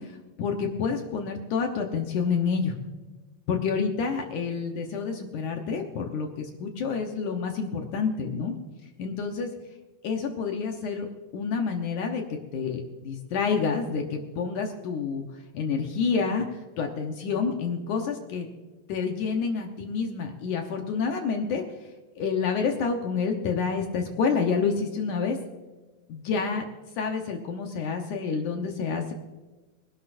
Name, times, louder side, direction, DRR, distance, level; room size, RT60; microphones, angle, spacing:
voice 1, 0.0-2.8 3.5-8.6 9.0-9.5 10.0-15.2 15.5-18.5 18.9-21.6 22.2-25.4 26.1-26.7 27.0-29.1, left 5 dB, 70° left, 3 dB, 2.0 m, -28 dB
23.5 x 12.0 x 2.6 m, 1.2 s
omnidirectional pair, 4.7 m